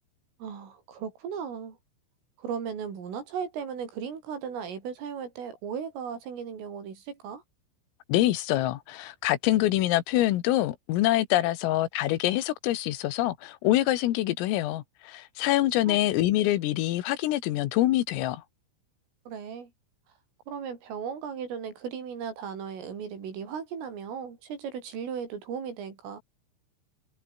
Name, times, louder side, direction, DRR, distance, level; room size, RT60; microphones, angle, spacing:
voice 1, 0.4-1.8 2.4-7.4 15.9-16.0 19.3-19.7 20.5-26.2, right 7 dB, 75° right, 7.5 m, -36 dB
voice 2, 8.1-18.4, left 15 dB, 90° left, 4.2 m, -25 dB
omnidirectional pair, 5.8 m